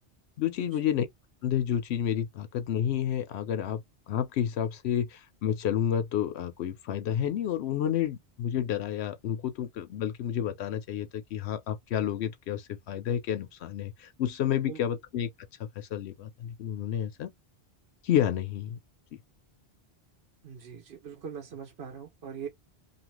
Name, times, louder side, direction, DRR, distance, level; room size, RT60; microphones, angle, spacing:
voice 1, 0.4-1.1 1.4-15.3 15.6-17.3 18.0-18.8, left 10 dB, 75° left, 0.8 m, -30 dB
voice 2, 20.4-22.5, right 7 dB, 65° right, 1.0 m, -41 dB
2.7 x 2.5 x 2.9 m
omnidirectional pair, 1.1 m